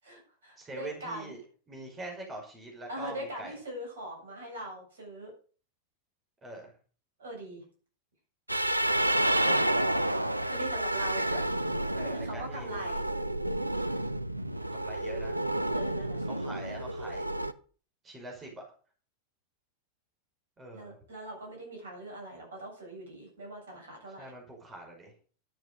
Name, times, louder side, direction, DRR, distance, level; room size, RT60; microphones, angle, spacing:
voice 1, 0.0-1.3 2.9-5.3 7.2-7.6 10.5-11.2 12.2-13.0 15.7-16.3 20.7-24.3, right 1 dB, 65° right, 1 dB, 8.0 m, -41 dB
voice 2, 0.6-1.4 1.7-3.5 6.4-6.7 9.4-9.8 11.3-13.0 14.7-15.4 16.2-17.3 18.0-18.6 20.6-21.0 24.2-25.1, right 2 dB, 20° right, 0 dB, 5.7 m, -44 dB
sound 1, 8.5-17.5, right 1 dB, 85° right, 0.7 m, -30 dB
12.0 x 9.1 x 6.7 m, 0.40 s
figure-of-eight pair, 90°, 0 cm